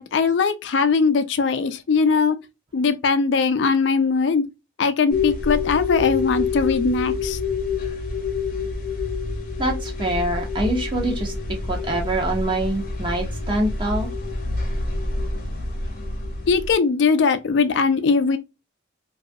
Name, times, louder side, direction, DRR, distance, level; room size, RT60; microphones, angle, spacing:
voice 1, 0.0-2.4 2.7-4.4 4.8-7.4 16.5-18.4, left 5 dB, 80° left, 0.4 m, -20 dB
sound 1, 5.1-16.7, left 4 dB, 50° left, 0.7 m, -27 dB
voice 2, 9.6-11.3 11.7-14.1, right 1 dB, 25° right, 0.5 m, -25 dB
2.6 x 2.3 x 2.4 m
head